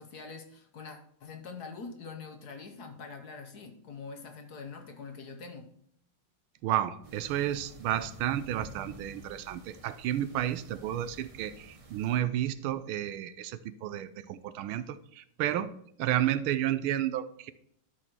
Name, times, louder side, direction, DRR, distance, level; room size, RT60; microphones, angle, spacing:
voice 1, 0.0-5.7, left 4 dB, 55° left, 5 dB, 1.4 m, -44 dB
voice 2, 6.6-15.7 16.0-17.5, right 12 dB, 90° right, 14 dB, 1.5 m, -31 dB
sound 1, 7.0-12.2, right 2 dB, 35° right, 0.5 m, -50 dB
12.5 x 4.2 x 4.5 m, 0.68 s
omnidirectional pair, 2.3 m